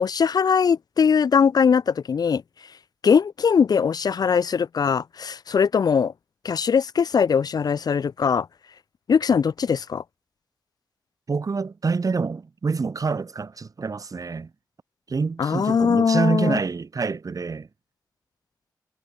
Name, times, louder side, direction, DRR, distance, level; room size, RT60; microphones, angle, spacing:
voice 1, 0.0-2.4 3.0-6.1 6.4-8.5 9.1-10.0 15.4-16.6, left 6 dB, 75° left, 1.1 m, -21 dB
voice 2, 11.3-14.5 15.1-17.7, right 4 dB, 60° right, 3.2 m, -26 dB
cardioid pair, 50°, 7 cm